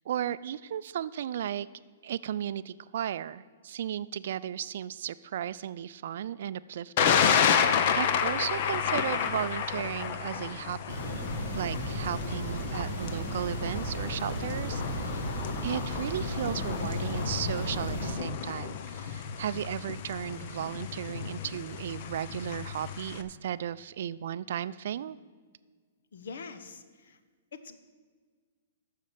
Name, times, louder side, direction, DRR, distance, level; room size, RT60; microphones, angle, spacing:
voice 1, 0.0-1.7 2.0-7.6 7.9-11.2 11.5-15.3 15.6-25.2, right 10 dB, 55° right, 16 dB, 0.3 m, -35 dB
Thunder, 7.0-23.2, left 7 dB, 40° left, 0.6 m, -31 dB
sound 1, 10.9-18.1, equal, 60° left, 2.6 m, -35 dB
voice 2, 26.1-27.2 27.5-27.8, left 5 dB, 75° left, 10 dB, 0.9 m, -44 dB
9.4 x 6.5 x 7.4 m, 1.5 s
hypercardioid pair, 170°, 0 cm